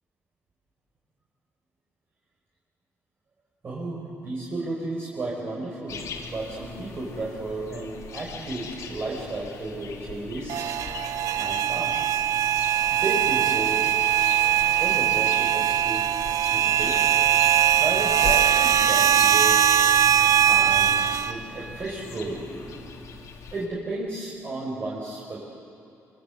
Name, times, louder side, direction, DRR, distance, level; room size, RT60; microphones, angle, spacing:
voice 1, 3.6-10.8 11.3-12.2 12.9-13.9 14.8-16.1 16.4-17.4 17.8-19.8 20.4-23.0 23.5-25.4, right 2 dB, 40° right, -5 dB, 5.5 m, -33 dB
sound 1, 5.9-23.7, left 5 dB, 75° left, 3.0 m, -40 dB
sound 2, 10.5-21.3, right 10 dB, 75° right, 0.7 m, -21 dB
26.5 x 24.5 x 8.3 m, 2.5 s
cardioid pair, 115°, 6 cm